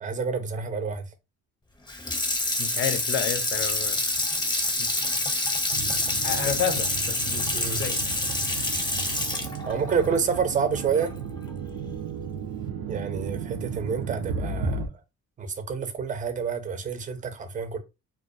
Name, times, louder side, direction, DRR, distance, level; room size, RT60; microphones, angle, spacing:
voice 1, 0.0-1.1 7.5-7.8 9.6-11.1 12.9-14.9 15.4-17.8, right 6 dB, 25° right, 0.5 m, -28 dB
Water tap faucet / Sink (filling or washing), 1.9-11.1 11.5-11.6, left 2 dB, 15° left, 0.7 m, -27 dB
voice 2, 2.6-4.0 4.8-5.2 6.2-8.0, left 9 dB, 40° left, 0.4 m, -31 dB
sound 1, 5.7-14.9, right 5 dB, 85° right, 0.5 m, -34 dB
2.2 x 2.2 x 2.6 m
cardioid pair, 90°, 30 cm